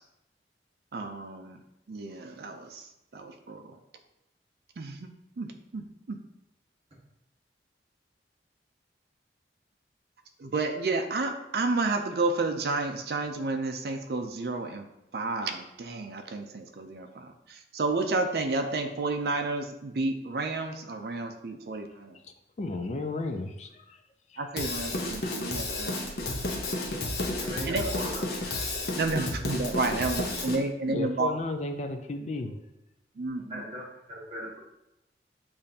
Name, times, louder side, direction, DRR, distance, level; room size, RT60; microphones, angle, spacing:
voice 1, 0.9-1.6 1.9-2.8 3.1-3.8 4.8-5.1 5.4-5.5 5.7-6.2 10.4-14.9 15.1-22.2 24.4-26.3 27.7-27.8 29.0-31.3 33.2-33.6, right 3 dB, 60° right, 5 dB, 0.4 m, -31 dB
voice 2, 22.6-24.0 24.3-24.4 25.9-26.0 29.9-30.0 30.9-32.6, left 3 dB, 40° left, 6 dB, 0.4 m, -34 dB
Drum kit / Drum, 24.6-30.6, left 2 dB, 65° left, 0.7 m, -32 dB
voice 3, 27.4-28.2 33.4-34.6, equal, 30° right, -5 dB, 1.3 m, -38 dB
6.8 x 2.5 x 2.7 m, 0.87 s
head